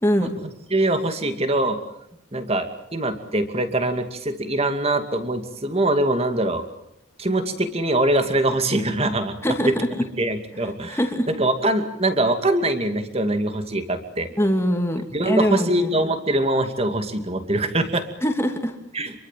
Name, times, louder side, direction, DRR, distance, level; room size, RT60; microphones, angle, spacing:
voice 1, 0.0-0.3 9.4-9.9 10.9-11.3 14.4-16.1 18.2-18.7, equal, 10° left, 4 dB, 2.7 m, -23 dB
voice 2, 0.7-1.8 2.3-6.6 7.2-9.3 9.7-9.8 10.2-11.0 11.4-14.3 15.1-18.1 18.9-19.1, right 1 dB, 30° right, 8 dB, 2.4 m, -23 dB
28.0 x 23.0 x 7.6 m, 0.76 s
head